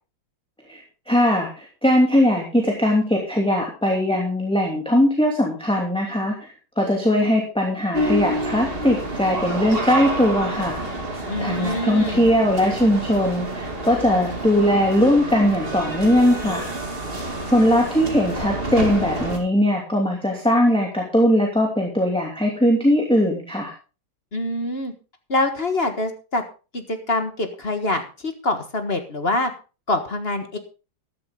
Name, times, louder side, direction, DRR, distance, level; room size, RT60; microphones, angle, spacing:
voice 1, 1.1-6.5 6.8-10.8 11.4-16.7 17.5-23.7, equal, 5° left, 0 dB, 2.7 m, -20 dB
sound 1, 7.9-19.4, right 1 dB, 30° right, 2.6 m, -28 dB
voice 2, 11.3-12.2 24.3-24.9 25.3-26.4 26.7-29.5 29.9-30.6, left 2 dB, 35° left, 7 dB, 1.6 m, -25 dB
14.0 x 12.0 x 3.7 m, 0.33 s
omnidirectional pair, 2.0 m